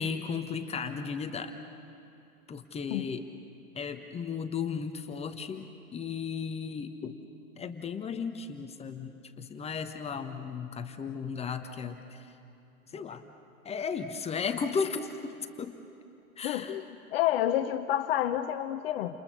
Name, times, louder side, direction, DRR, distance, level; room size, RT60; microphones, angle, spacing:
voice 1, 0.0-1.6 2.5-3.3 3.7-7.2 7.6-12.3 12.9-13.2 13.6-15.7 16.4-16.8, left 6 dB, 15° left, 6 dB, 1.1 m, -35 dB
voice 2, 16.4-16.8 17.1-19.2, left 12 dB, 40° left, 9 dB, 1.0 m, -29 dB
29.5 x 28.0 x 6.6 m, 2.8 s
figure-of-eight pair, 110°, 44 cm